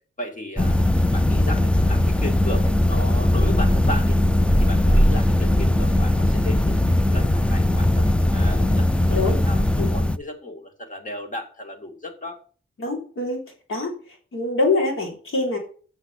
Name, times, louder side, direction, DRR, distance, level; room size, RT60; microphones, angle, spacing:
voice 1, 0.2-4.2 4.6-12.4, left 1 dB, 40° left, 4 dB, 2.1 m, -35 dB
sound 1, 0.6-10.2, left 1 dB, 5° left, 0.5 m, -19 dB
voice 2, 9.1-9.4 9.8-9.9 12.8-13.4 13.7-13.9 14.3-15.6, left 3 dB, 85° left, 1 dB, 3.5 m, -24 dB
8.0 x 6.5 x 8.3 m, 0.43 s
wide cardioid pair, 140°, 21 cm